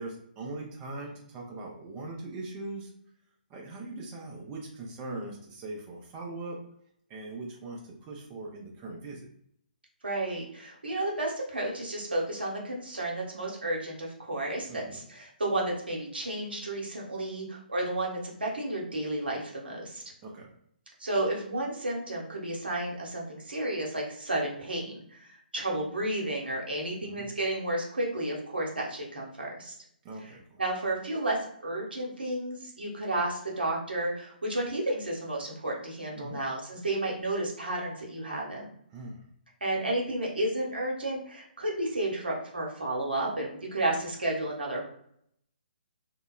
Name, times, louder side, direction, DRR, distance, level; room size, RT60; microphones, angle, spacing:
voice 1, 0.0-2.9 3.5-6.6 7.1-9.3 14.7-15.0 20.2-20.5 27.0-27.3 30.0-30.6 36.2-36.4 38.9-39.2, right 2 dB, 20° right, -1 dB, 0.4 m, -40 dB
voice 2, 10.0-20.0 21.0-29.7 30.2-30.3 30.6-38.7 39.6-44.8, right 1 dB, 75° right, -2 dB, 0.9 m, -32 dB
2.7 x 2.0 x 2.3 m, 0.70 s
figure-of-eight pair, 135°, 5 cm